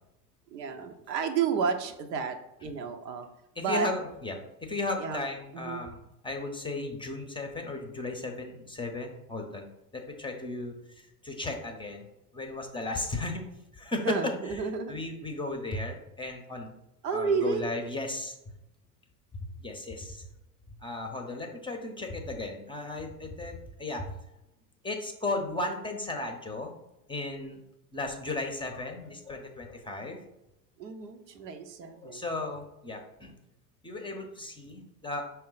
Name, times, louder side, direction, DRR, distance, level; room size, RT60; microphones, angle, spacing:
voice 1, 0.5-3.3 3.6-3.9 5.0-5.2 5.5-5.8 14.0-15.0 17.0-17.7 30.8-32.2, right 5 dB, 80° right, 7 dB, 0.7 m, -31 dB
voice 2, 3.6-9.7 9.9-12.0 12.3-13.4 13.7-14.3 14.9-16.7 17.1-18.4 19.6-20.3 20.8-24.1 24.8-26.7 27.1-27.6 27.9-30.2 32.0-33.3 33.8-35.2, left 2 dB, 10° left, 3 dB, 0.6 m, -35 dB
5.4 x 2.2 x 3.8 m, 0.90 s
hypercardioid pair, 75°, 49 cm